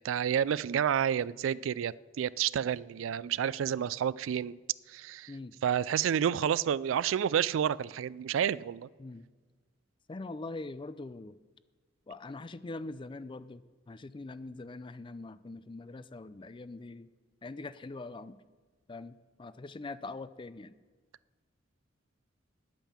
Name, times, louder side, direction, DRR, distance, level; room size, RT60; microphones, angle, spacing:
voice 1, 0.0-4.6 4.9-5.3 5.6-8.9, right 9 dB, 90° right, 21 dB, 0.3 m, -30 dB
voice 2, 10.1-11.4 12.1-17.1 17.4-18.3 18.9-20.7, left 2 dB, 25° left, 15 dB, 0.4 m, -43 dB
10.5 x 9.0 x 7.3 m, 1.4 s
head